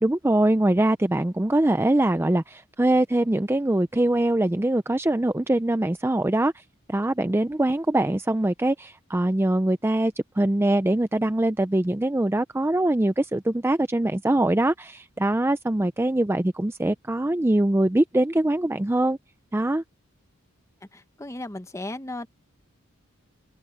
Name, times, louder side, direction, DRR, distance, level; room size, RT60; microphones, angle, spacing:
voice 1, 0.0-6.6 6.9-19.2 19.5-19.8, right 1 dB, 10° right, 0.4 m, -23 dB
voice 2, 20.9-22.3, left 1 dB, 15° left, 0.8 m, -35 dB
open air
head